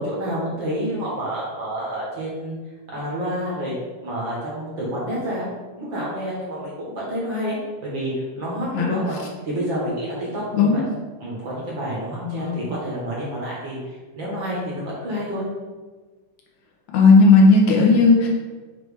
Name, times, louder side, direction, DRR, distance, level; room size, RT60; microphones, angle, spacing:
voice 1, 0.0-2.5 2.9-3.7 4.0-5.5 5.8-7.6 7.8-9.2 9.4-10.8 11.2-15.4, equal, 50° right, -6 dB, 1.5 m, -28 dB
voice 2, 12.2-12.7 16.9-18.3, left 3 dB, 70° left, -1 dB, 2.3 m, -15 dB
6.7 x 2.9 x 4.8 m, 1.4 s
omnidirectional pair, 3.6 m